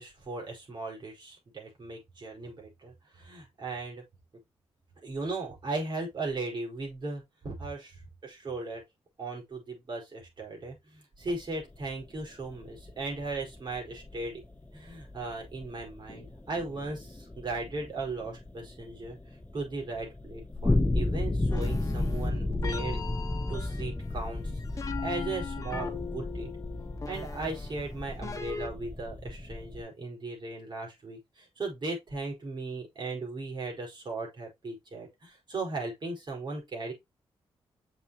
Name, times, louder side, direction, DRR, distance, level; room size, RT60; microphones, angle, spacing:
voice 1, 0.0-4.0 5.0-8.8 9.2-14.4 14.7-23.0 23.5-24.4 24.7-26.5 27.0-36.9, right 3 dB, 50° right, 4.9 m, -37 dB
sound 1, 11.3-29.8, left 2 dB, 15° left, 0.9 m, -34 dB
sound 2, 21.5-28.7, left 4 dB, 35° left, 1.3 m, -41 dB
6.9 x 6.0 x 3.0 m
cardioid pair, 85°, 10 cm